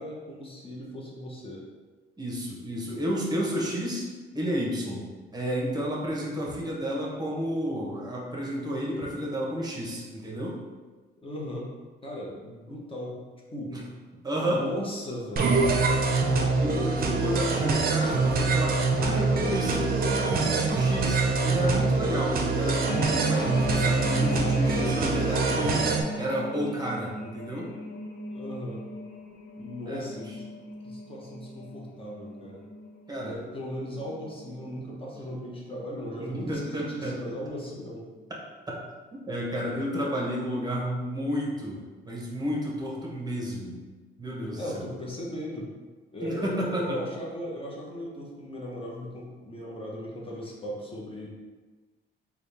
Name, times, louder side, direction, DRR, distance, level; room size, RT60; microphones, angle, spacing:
voice 1, 0.0-1.6 3.5-3.6 11.2-11.7 12.0-13.3 13.5-13.8 14.4-15.6 26.5-26.8 28.3-28.8 29.6-30.4 30.8-32.7 33.2-38.1 44.6-45.7 46.1-51.3, equal, 30° left, -4 dB, 0.8 m, -37 dB
voice 2, 2.2-4.1 4.3-5.0 5.3-10.6 13.7-13.8 14.2-14.6 16.6-25.8 26.2-27.7 29.9-30.4 33.1-33.4 36.2-37.2 38.7-38.8 39.1-41.8 42.0-43.8 44.2-44.9 46.2-47.0, equal, 20° right, -3 dB, 1.0 m, -31 dB
sound 1, 15.4-26.0, right 3 dB, 50° right, 0.5 m, -24 dB
sound 2, 22.9-35.2 35.7-36.0 36.4-37.1 37.8-37.9, left 1 dB, 55° left, 0.5 m, -39 dB
3.8 x 2.3 x 3.3 m, 1.3 s
cardioid pair, 90°, 20 cm